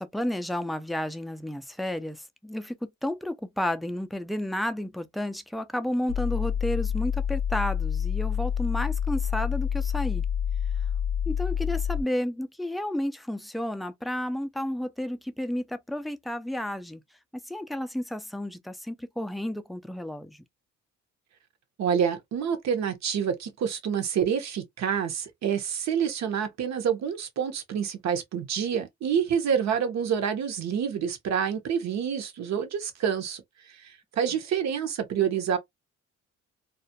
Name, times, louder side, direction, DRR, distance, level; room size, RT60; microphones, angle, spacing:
voice 1, 0.0-10.2 11.3-17.0 17.5-20.4, left 1 dB, ahead, 0.3 m, -32 dB
sound 1, 6.1-12.0, left 8 dB, 50° left, 0.6 m, -28 dB
voice 2, 21.8-33.4 33.8-35.6, right 8 dB, 60° right, 0.8 m, -27 dB
2.3 x 2.1 x 2.7 m
cardioid pair, 90°, 30 cm